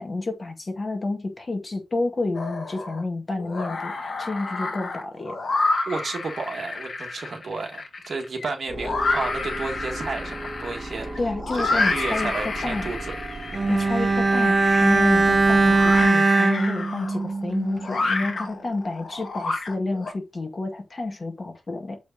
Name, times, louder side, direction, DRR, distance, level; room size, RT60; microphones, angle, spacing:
voice 1, 0.0-5.4 11.2-12.9 13.7-22.0, left 2 dB, 35° left, 1.8 m, -29 dB
sound 1, 2.3-3.0 3.4-20.1, left 3 dB, 50° left, 1.9 m, -30 dB
voice 2, 5.9-11.2 11.5-13.1, right 4 dB, 55° right, 1.6 m, -32 dB
sound 2, 8.7-16.1, right 2 dB, 20° right, 2.1 m, -36 dB
Bowed string instrument, 13.5-18.0 18.2-18.4, right 3 dB, 35° right, 0.8 m, -20 dB
6.9 x 5.1 x 4.0 m
wide cardioid pair, 160°, 0 cm